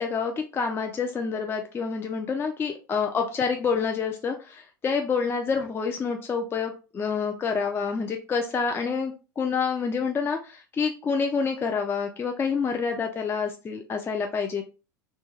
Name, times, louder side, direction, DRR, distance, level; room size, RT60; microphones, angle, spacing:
voice 1, 0.0-14.6, left 5 dB, 20° left, 3 dB, 0.4 m, -28 dB
2.2 x 2.2 x 3.1 m, 0.33 s
hypercardioid pair, 80°, 11 cm